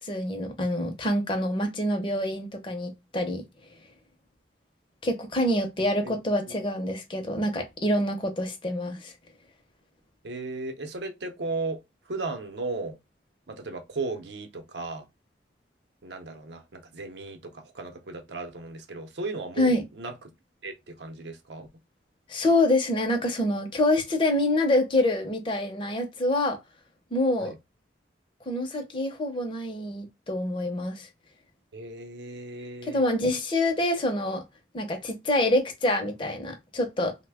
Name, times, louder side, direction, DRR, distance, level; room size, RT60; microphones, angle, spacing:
voice 1, 0.0-3.4 5.0-9.1 19.6-19.8 22.3-26.6 27.1-27.5 28.5-31.1 32.8-34.4 34.7-37.1, left 1 dB, 25° left, 0.6 m, -26 dB
voice 2, 10.2-11.8 12.1-13.0 13.5-15.1 16.0-20.1 20.6-21.7 27.4-27.5 31.7-33.0, right 3 dB, 70° right, 0.7 m, -36 dB
3.1 x 2.1 x 3.4 m
head